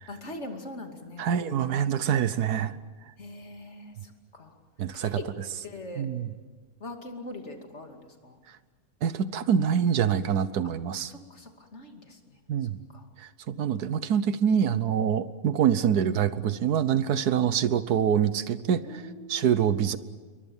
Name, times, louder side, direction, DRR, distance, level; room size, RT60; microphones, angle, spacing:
voice 1, 0.1-1.6 3.2-4.5 4.9-5.3 5.6-6.1 6.8-8.4 11.0-12.2 12.9-13.1 17.5-17.6 18.8-20.0, left 2 dB, 45° left, 4 dB, 2.9 m, -42 dB
voice 2, 1.2-2.8 4.8-5.2 6.0-6.3 9.0-11.1 12.5-12.8 13.2-19.0 19.3-20.0, right 8 dB, 85° right, 14 dB, 1.5 m, -25 dB
28.5 x 23.0 x 7.2 m, 1.4 s
omnidirectional pair, 1.6 m